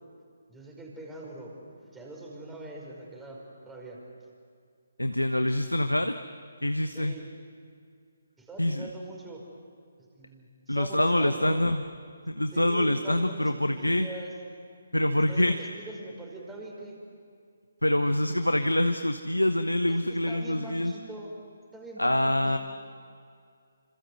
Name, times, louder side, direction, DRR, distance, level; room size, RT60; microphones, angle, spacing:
voice 1, 0.5-1.5 1.8-4.0 5.5-5.6 6.9-7.2 8.4-9.4 10.2-11.6 12.5-13.5 13.8-14.3 15.1-17.0 19.9-21.3 21.7-22.6, right 2 dB, 10° right, -1 dB, 5.4 m, -42 dB
voice 2, 5.0-6.2 6.6-7.2 8.6-8.9 10.7-11.8 12.3-14.1 14.9-15.6 17.8-20.9 22.0-22.6, left 1 dB, 90° left, 8 dB, 1.1 m, -25 dB
28.0 x 26.0 x 8.0 m, 2.3 s
figure-of-eight pair, 140°, 0 cm